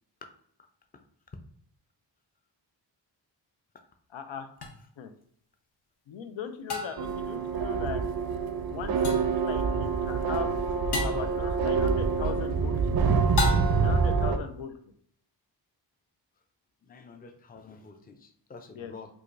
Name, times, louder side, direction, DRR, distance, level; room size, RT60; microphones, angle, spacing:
voice 1, 4.1-4.5 5.0-5.1 6.1-8.0 8.7-10.5 11.0-13.0 13.8-14.7 18.7-18.9, left 7 dB, 90° left, 7 dB, 0.6 m, -39 dB
sound 1, 4.6-4.7 6.7-7.2 9.0-9.4 10.9-11.3 13.4-14.0, left 3 dB, 60° left, 0.8 m, -32 dB
sound 2, 7.0-14.4, right 5 dB, 55° right, 0.5 m, -26 dB
voice 2, 16.9-19.1, left 4 dB, 20° left, 6 dB, 0.4 m, -48 dB
4.8 x 2.4 x 2.5 m, 0.63 s
wide cardioid pair, 95°, 45 cm